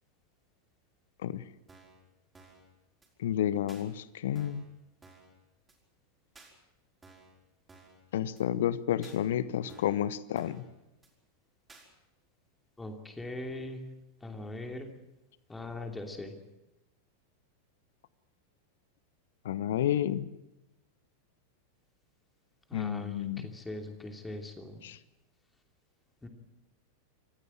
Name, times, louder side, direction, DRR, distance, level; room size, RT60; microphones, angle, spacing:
sound 1, 1.7-2.0 2.3-2.7 3.0-3.1 3.7-3.8 4.4-4.7 5.0-5.3 5.7-5.8 6.4-6.5 7.0-7.4 7.7-8.0 8.4-8.5 9.0-9.2 9.7-10.0 10.4-10.7 11.0-11.1 11.7-11.9, right 3 dB, 15° right, 5.3 m, -56 dB
voice 1, 3.2-4.6 8.1-10.6 19.4-20.3 22.7-23.5 24.8-25.0, left 11 dB, 60° left, 18 dB, 0.9 m, -30 dB
voice 2, 12.8-13.8 14.2-14.9 15.5-16.3 22.7-24.8 26.2-26.3, left 2 dB, 10° left, 4 dB, 2.9 m, -40 dB
26.0 x 15.0 x 7.6 m, 0.94 s
figure-of-eight pair, 90°, 0 cm